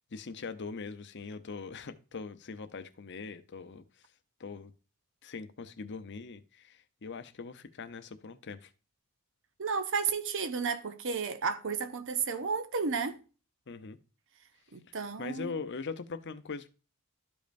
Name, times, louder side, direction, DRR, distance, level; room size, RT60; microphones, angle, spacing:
voice 1, 0.0-4.1 4.4-4.7 5.2-8.7 13.7-14.0 15.2-16.7, left 4 dB, 55° left, 0.7 m, -41 dB
voice 2, 9.6-13.2 14.7-15.5, right 5 dB, 60° right, 0.7 m, -32 dB
12.5 x 5.2 x 2.6 m
head